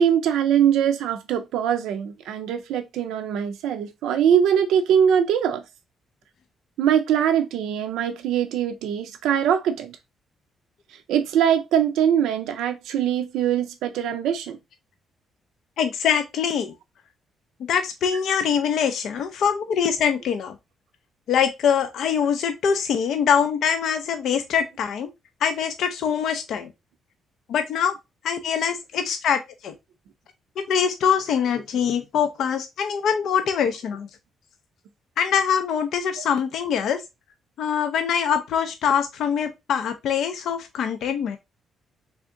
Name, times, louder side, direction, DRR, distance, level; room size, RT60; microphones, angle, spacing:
voice 1, 0.0-5.6 6.8-10.0 11.1-14.6, right 9 dB, 85° right, 0.4 m, -22 dB
voice 2, 15.8-16.7 17.7-20.6 21.3-25.1 25.4-26.7 27.5-27.9 28.2-29.7 30.6-34.1 35.2-37.0 37.6-41.4, left 7 dB, 70° left, 0.4 m, -23 dB
3.4 x 2.5 x 3.6 m
cardioid pair, 90°, 0 cm